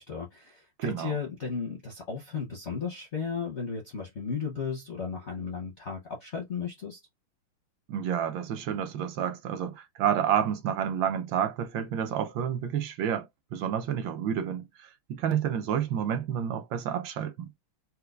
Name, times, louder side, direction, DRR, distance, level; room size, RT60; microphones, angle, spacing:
voice 1, 0.0-7.0, left 5 dB, 60° left, 0.7 m, -35 dB
voice 2, 0.8-1.1 7.9-17.5, right 9 dB, 75° right, 1.3 m, -30 dB
4.4 x 2.2 x 2.3 m
omnidirectional pair, 2.3 m